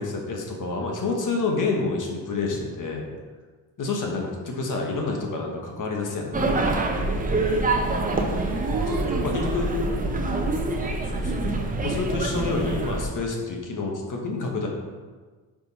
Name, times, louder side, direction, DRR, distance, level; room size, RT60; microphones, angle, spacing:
voice 1, 0.0-3.0 3.8-6.5 8.9-9.7 11.2-11.5 11.8-14.7, left 3 dB, 50° left, 0 dB, 1.3 m, -28 dB
sound 1, 6.3-13.1, right 2 dB, 20° right, 0.7 m, -26 dB
voice 2, 7.8-10.9, right 3 dB, 55° right, 1 dB, 1.2 m, -32 dB
5.0 x 4.7 x 4.2 m, 1.4 s
cardioid pair, 95°, 40 cm